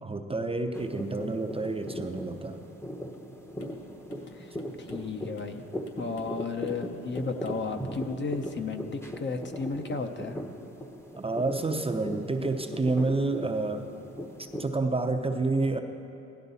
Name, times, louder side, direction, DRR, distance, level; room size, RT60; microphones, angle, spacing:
voice 1, 0.0-2.6 11.2-13.9 14.4-15.8, right 3 dB, 20° right, 5 dB, 0.6 m, -29 dB
sound 1, 0.7-14.7, equal, 10° left, 0.9 m, -39 dB
sound 2, 3.6-3.8 4.1-4.3 4.6-5.6 5.9-6.4 6.7-6.9 7.1-7.7 7.9-8.1 8.4-8.6, equal, 60° left, 2.6 m, -49 dB
voice 2, 4.8-5.6 6.0-10.4, left 4 dB, 40° left, 6 dB, 0.8 m, -34 dB
16.5 x 11.5 x 4.1 m, 2.8 s
cardioid pair, 90°, 30 cm